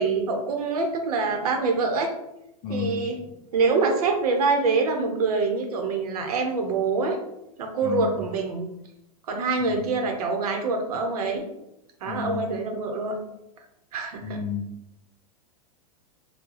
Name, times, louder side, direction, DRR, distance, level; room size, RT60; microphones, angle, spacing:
voice 1, 0.0-2.1 2.7-3.2 3.5-7.2 7.6-8.6 9.3-11.4 12.0-13.2 13.9-14.4, right 4 dB, 85° right, 3 dB, 0.8 m, -25 dB
voice 2, 2.6-3.3 7.8-8.2 9.6-10.0 12.1-12.5 14.2-14.7, left 5 dB, 20° left, 2 dB, 0.4 m, -32 dB
3.7 x 2.2 x 3.0 m, 0.83 s
supercardioid pair, 150°, 19 cm